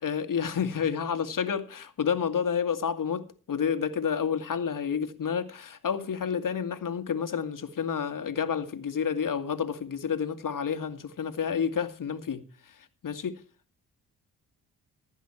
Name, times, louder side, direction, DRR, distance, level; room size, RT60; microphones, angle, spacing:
voice 1, 0.0-13.4, left 7 dB, 50° left, 2.1 m, -30 dB
15.5 x 11.0 x 4.4 m
hypercardioid pair, 45°, 40 cm